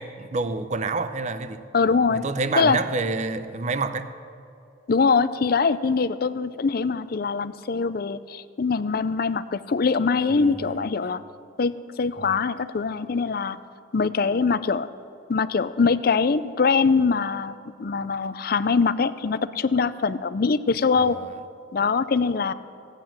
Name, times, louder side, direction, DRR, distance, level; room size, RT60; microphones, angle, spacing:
voice 1, 0.0-1.6 2.1-4.1 10.3-10.7 12.2-12.3 21.0-21.4, right 3 dB, 40° right, 11 dB, 0.7 m, -28 dB
voice 2, 1.7-2.2 2.6-2.8 4.9-11.2 11.6-13.6 13.9-14.9 15.3-17.5 17.8-21.2 21.7-22.5, left 4 dB, 50° left, 14 dB, 0.5 m, -23 dB
16.0 x 9.0 x 7.5 m, 2.6 s
head